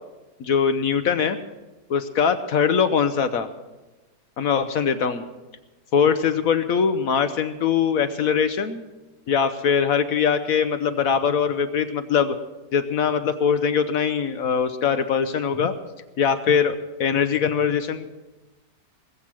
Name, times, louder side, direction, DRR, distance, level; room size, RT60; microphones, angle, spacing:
voice 1, 0.4-1.4 1.9-3.5 4.4-5.3 5.9-8.8 9.3-12.4 12.7-15.7 16.2-18.1, left 7 dB, 60° left, 10 dB, 1.1 m, -22 dB
20.0 x 7.8 x 7.5 m, 1.1 s
omnidirectional pair, 1.8 m